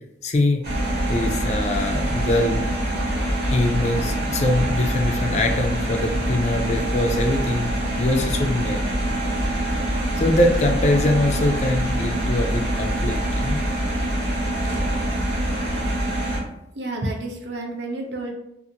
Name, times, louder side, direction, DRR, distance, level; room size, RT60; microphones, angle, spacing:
voice 1, 0.2-0.7 1.1-2.6 3.5-7.7 8.0-8.8 10.2-13.6, left 1 dB, 40° left, 4 dB, 0.4 m, -23 dB
sound 1, 0.6-16.4, right 1 dB, 55° right, 1.1 m, -24 dB
voice 2, 16.7-18.3, right 2 dB, 75° right, 2 dB, 0.6 m, -30 dB
2.6 x 2.5 x 2.8 m, 0.81 s
head